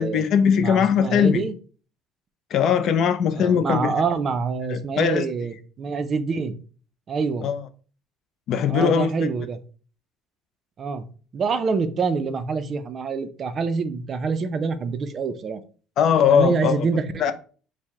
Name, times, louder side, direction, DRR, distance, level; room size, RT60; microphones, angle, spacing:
voice 1, 0.0-1.4 2.5-3.9 4.7-5.3 7.4-7.6 8.5-9.3 16.0-16.7 17.2-17.3, left 7 dB, 50° left, 0.4 m, -20 dB
voice 2, 0.6-1.5 3.4-6.6 7.1-7.5 8.7-9.6 10.8-11.1 11.3-15.6 16.3-17.3, right 4 dB, 35° right, 0.4 m, -26 dB
4.5 x 2.0 x 3.5 m
cardioid pair, 140°, 0 cm